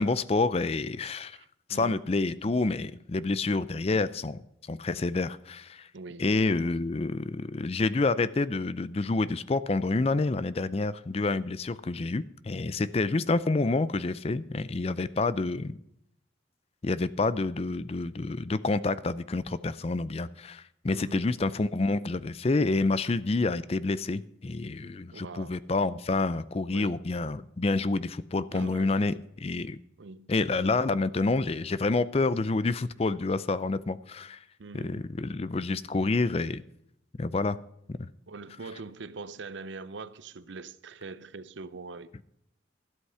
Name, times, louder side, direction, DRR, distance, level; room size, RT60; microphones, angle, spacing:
voice 1, 0.0-1.4 1.7-4.4 4.7-5.9 6.2-15.8 16.8-29.8 30.3-34.4 34.7-36.6 37.2-37.6 37.9-38.1, left 3 dB, 30° left, 0.4 m, -28 dB
voice 2, 1.4-2.0 3.7-3.9 5.9-6.3 20.9-21.3 25.1-25.6 26.7-27.0 28.3-29.0 30.0-30.3 34.6-35.1 38.3-42.2, right 3 dB, 75° right, 0.6 m, -43 dB
12.5 x 8.1 x 5.7 m
head